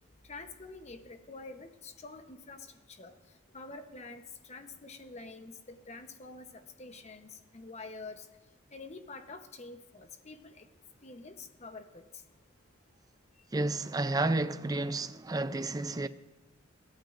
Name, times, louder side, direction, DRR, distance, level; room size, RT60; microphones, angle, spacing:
voice 1, 0.3-3.1 3.5-8.3 8.7-10.7 11.0-12.0, left 3 dB, 35° left, 0.9 m, -47 dB
voice 2, 13.5-16.1, right 2 dB, 20° right, 0.4 m, -31 dB
21.5 x 14.0 x 2.5 m
head